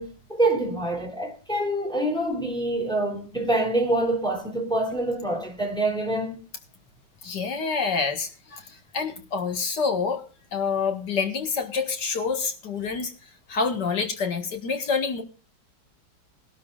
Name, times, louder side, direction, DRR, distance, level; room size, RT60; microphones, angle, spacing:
voice 1, 0.0-6.4, right 1 dB, ahead, 3.3 m, -26 dB
voice 2, 7.2-10.2 10.5-13.1 13.5-15.2, left 5 dB, 60° left, 2.3 m, -27 dB
21.0 x 12.5 x 2.4 m
omnidirectional pair, 2.0 m